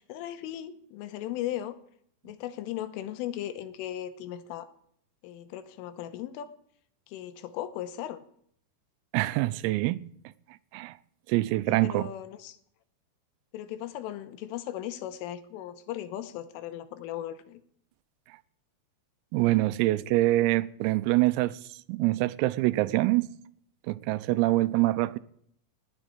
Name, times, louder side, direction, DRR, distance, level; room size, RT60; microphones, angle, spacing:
voice 1, 0.0-1.8 2.2-4.7 5.2-6.5 7.1-8.2 11.7-12.6 13.5-17.6, left 12 dB, 80° left, 3.4 m, -37 dB
voice 2, 9.1-10.1 10.7-11.0 11.3-12.1 19.3-21.6 21.9-23.3 23.9-25.2, right 18 dB, 90° right, 3.5 m, -25 dB
19.0 x 8.2 x 8.1 m
omnidirectional pair, 5.9 m